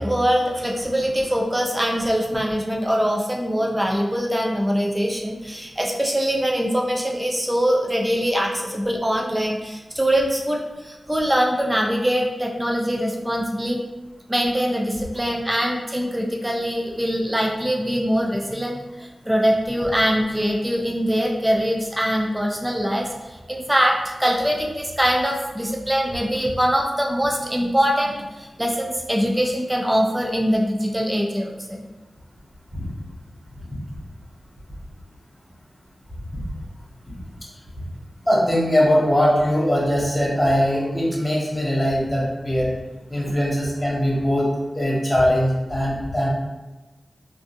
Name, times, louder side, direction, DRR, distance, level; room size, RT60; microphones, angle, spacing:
voice 1, 0.0-13.8 14.3-31.8, equal, 10° right, -1 dB, 0.4 m, -23 dB
voice 2, 38.3-42.7 43.1-44.5 44.7-46.3, equal, 10° left, -6 dB, 1.4 m, -21 dB
3.7 x 2.5 x 2.6 m, 1.1 s
cardioid pair, 55°, 0 cm